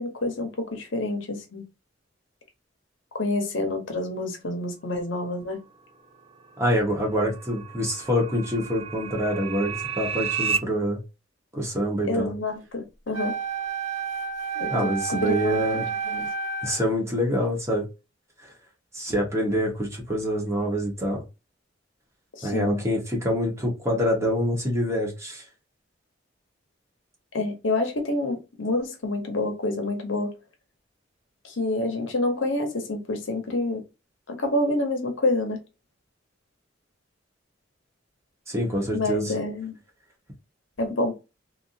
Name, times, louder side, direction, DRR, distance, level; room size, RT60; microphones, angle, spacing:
voice 1, 0.0-1.6 3.1-5.6 12.1-13.4 14.5-16.3 22.4-22.8 27.3-30.3 31.4-33.8 34.3-35.6 38.9-39.7 40.8-41.1, left 2 dB, 70° left, 1.1 m, -28 dB
sound 1, 6.3-10.6, right 6 dB, 30° right, 0.3 m, -32 dB
voice 2, 6.6-11.0 11.5-12.3 14.7-15.9 16.6-17.8 18.4-18.5 18.9-21.2 22.4-25.4 38.5-39.3, equal, 15° right, 1.2 m, -26 dB
Wind instrument woodwind instrument, 13.1-16.9, right 6 dB, 85° right, 1.2 m, -30 dB
3.4 x 2.7 x 2.6 m
head